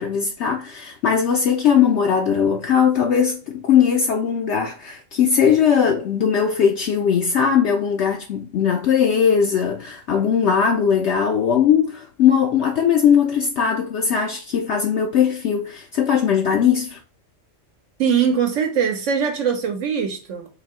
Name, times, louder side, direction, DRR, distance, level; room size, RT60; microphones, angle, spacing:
voice 1, 0.0-17.0, left 7 dB, 65° left, 0.8 m, -19 dB
voice 2, 18.0-20.5, right 7 dB, 70° right, 1.0 m, -21 dB
4.1 x 2.7 x 3.6 m
omnidirectional pair, 1.3 m